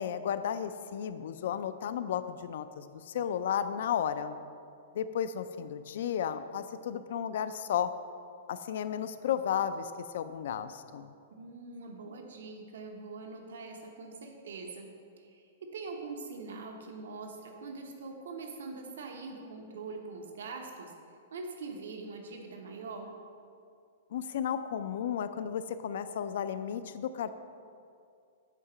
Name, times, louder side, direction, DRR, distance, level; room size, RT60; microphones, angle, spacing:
voice 1, 0.0-4.4 4.9-7.9 8.5-11.1 24.1-27.3, left 8 dB, 65° left, 12 dB, 0.3 m, -33 dB
voice 2, 11.3-14.9 15.2-20.9 21.3-23.1, right 3 dB, 85° right, 3 dB, 0.9 m, -43 dB
8.2 x 2.9 x 5.9 m, 2.4 s
hypercardioid pair, 160°, 0 cm